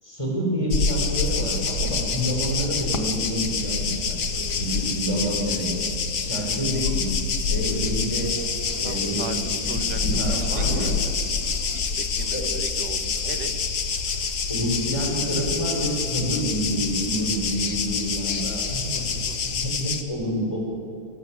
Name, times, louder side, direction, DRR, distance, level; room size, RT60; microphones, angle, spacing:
voice 1, 0.0-5.7 6.2-7.1 7.5-8.4 8.8-10.9 12.3-12.5 14.5-18.9 19.5-20.6, equal, 10° left, -2 dB, 7.0 m, -28 dB
sound 1, 0.7-20.0, left 5 dB, 45° left, 1.4 m, -27 dB
sound 2, 1.3-19.6, left 2 dB, 65° left, 6.3 m, -37 dB
voice 2, 8.8-10.2 10.5-11.1 11.7-13.5 18.9-19.4, right 7 dB, 70° right, 8 dB, 3.0 m, -38 dB
29.5 x 16.0 x 8.5 m, 2.6 s
omnidirectional pair, 3.9 m